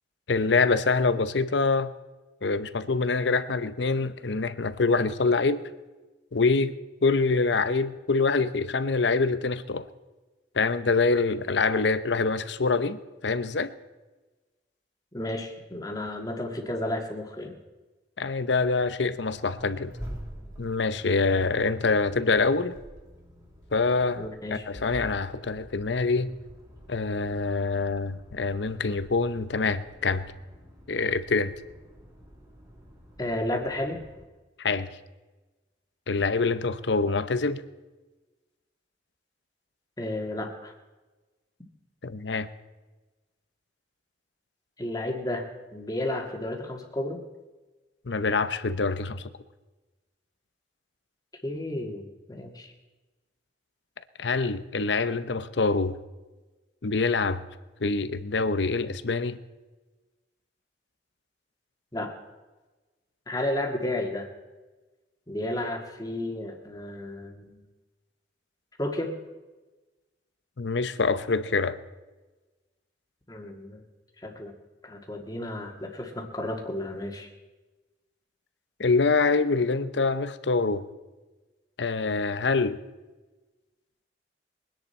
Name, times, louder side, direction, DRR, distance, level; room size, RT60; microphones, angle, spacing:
voice 1, 0.3-1.9 2.4-5.6 6.3-6.7 7.0-9.9 10.5-13.7 18.2-19.9 20.6-22.7 23.7-26.3 26.9-30.3 30.9-31.5 34.6-34.9 36.1-37.6 42.0-42.5 48.1-49.2 54.2-56.0 56.8-57.4 57.8-59.4 70.6-71.8 78.8-80.9 81.8-82.8, left 4 dB, 80° left, 13 dB, 0.8 m, -25 dB
voice 2, 15.1-17.6 24.2-24.6 33.2-34.0 40.0-40.7 44.8-45.5 45.7-47.2 51.4-52.7 61.9-62.1 63.3-64.3 65.3-67.6 68.8-69.1 73.3-73.8 74.2-74.5 74.8-77.3, left 1 dB, 20° left, 3 dB, 1.8 m, -32 dB
Accelerating revving vroom, 18.5-34.2, equal, 20° right, 2.7 m, -46 dB
22.5 x 10.5 x 4.4 m, 1.2 s
head